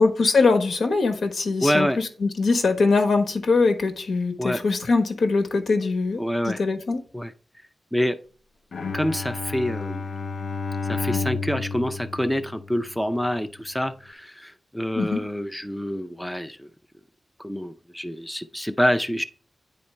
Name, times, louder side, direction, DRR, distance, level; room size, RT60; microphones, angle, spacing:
voice 1, 0.0-7.0 14.9-15.2, left 4 dB, 85° left, 1.2 m, -22 dB
voice 2, 1.6-2.0 4.4-4.6 6.2-6.6 7.1-7.3 7.9-8.2 8.9-10.0 10.9-16.7 17.4-19.2, equal, 5° left, 0.4 m, -26 dB
Bowed string instrument, 8.7-13.1, left 4 dB, 65° left, 0.5 m, -31 dB
9.5 x 4.2 x 3.3 m
wide cardioid pair, 150°, 0 cm